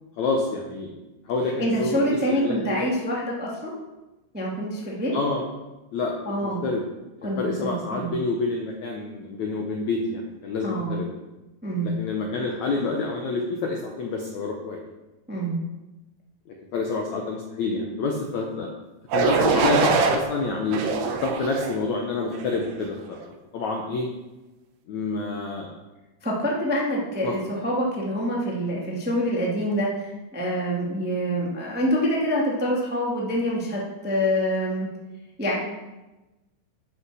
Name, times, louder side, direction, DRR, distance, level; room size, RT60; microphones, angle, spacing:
voice 1, 0.2-0.9 1.3-2.9 5.1-5.4 5.9-6.1 6.4-6.8 7.2-11.1 11.8-14.8 16.5-18.7 19.1-20.8 21.2-23.2 23.5-24.1 24.9-25.7 27.2-27.3, left 3 dB, 70° left, 1 dB, 1.7 m, -28 dB
voice 2, 1.6-3.7 4.3-5.1 6.2-6.6 7.2-8.1 10.6-11.0 11.6-11.9 15.3-15.6 26.2-34.9 35.4-35.6, equal, 5° right, -4 dB, 0.8 m, -26 dB
sound 1, 19.1-20.2 20.7-21.8 22.3-22.7, right 5 dB, 85° right, 3.2 m, -23 dB
11.5 x 6.1 x 6.2 m, 1.1 s
omnidirectional pair, 4.7 m